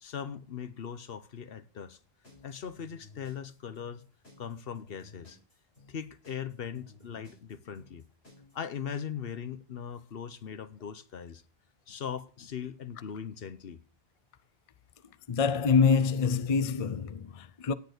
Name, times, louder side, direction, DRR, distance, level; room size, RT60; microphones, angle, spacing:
voice 1, 0.0-2.0 2.4-4.0 4.4-5.4 5.9-8.1 8.5-11.4 11.9-13.8, left 7 dB, 70° left, 1.0 m, -39 dB
sound 1, 2.2-8.8, left 3 dB, 85° left, 6.7 m, -55 dB
voice 2, 15.3-17.7, left 5 dB, 40° left, 0.7 m, -25 dB
17.5 x 6.7 x 6.5 m
omnidirectional pair, 1.0 m